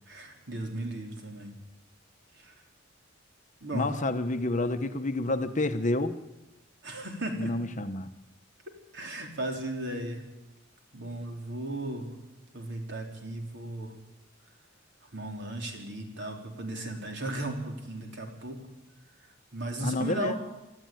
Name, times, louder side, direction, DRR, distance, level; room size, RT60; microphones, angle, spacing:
voice 1, 0.1-1.5 2.4-2.5 3.6-3.9 6.8-7.5 8.9-10.3 10.9-12.2 12.5-13.9 15.1-18.6 19.5-20.4, right 1 dB, 60° right, 2 dB, 3.9 m, -36 dB
voice 2, 3.7-6.2 7.4-8.1 19.8-20.4, left 2 dB, 40° left, 9 dB, 1.1 m, -29 dB
25.5 x 13.0 x 9.2 m, 1.0 s
head